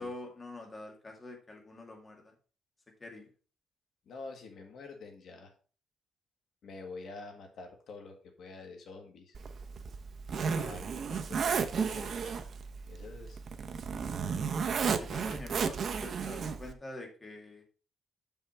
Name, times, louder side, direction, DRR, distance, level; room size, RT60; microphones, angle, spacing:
voice 1, 0.0-2.3 3.0-3.3 14.9-17.6, left 2 dB, 20° left, 2 dB, 1.9 m, -45 dB
voice 2, 4.1-5.5 6.6-9.4 10.4-12.5 12.9-13.4 15.1-15.3, left 3 dB, 60° left, 4 dB, 1.8 m, -47 dB
Zipper (clothing), 9.3-16.7, right 6 dB, 45° right, 0.7 m, -34 dB
7.0 x 5.6 x 4.4 m, 0.39 s
cardioid pair, 145°, 0 cm